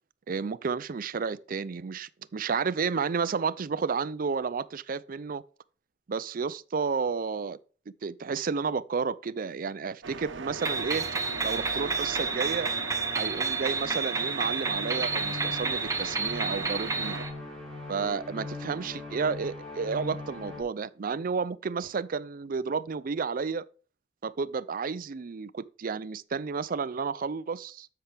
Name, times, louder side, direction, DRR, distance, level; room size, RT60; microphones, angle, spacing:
voice 1, 0.3-5.4 6.1-7.6 7.9-11.1 11.4-12.7 13.1-17.2 17.9-23.7 24.2-27.9, right 5 dB, 50° right, 0.4 m, -31 dB
sound 1, 10.0-17.3, right 4 dB, 80° right, 1.0 m, -40 dB
sound 2, 10.6-17.3, right 4 dB, 15° right, 0.9 m, -30 dB
sound 3, 10.7-20.6, left 2 dB, ahead, 4.5 m, -42 dB
12.5 x 5.8 x 3.4 m
head